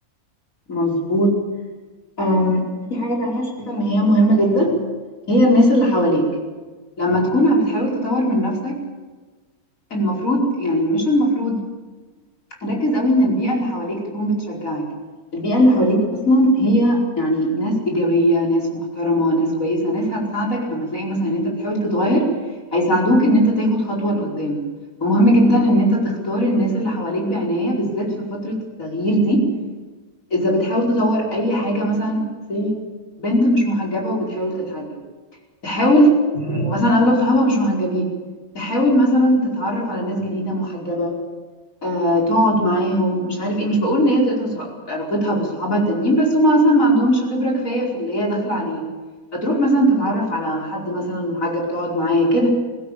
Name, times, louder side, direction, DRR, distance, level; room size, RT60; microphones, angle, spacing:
voice 1, 0.7-1.4 2.2-2.6 2.9-4.7 5.3-6.3 7.0-8.8 9.9-11.6 12.6-14.8 15.3-22.3 22.7-24.6 25.0-29.5 30.3-32.8 33.2-34.9 35.6-38.1 38.5-41.1 41.8-48.8 49.3-52.5, equal, 65° left, -2 dB, 5.4 m, -19 dB
21.5 x 16.0 x 8.6 m, 1.3 s
omnidirectional pair, 1.6 m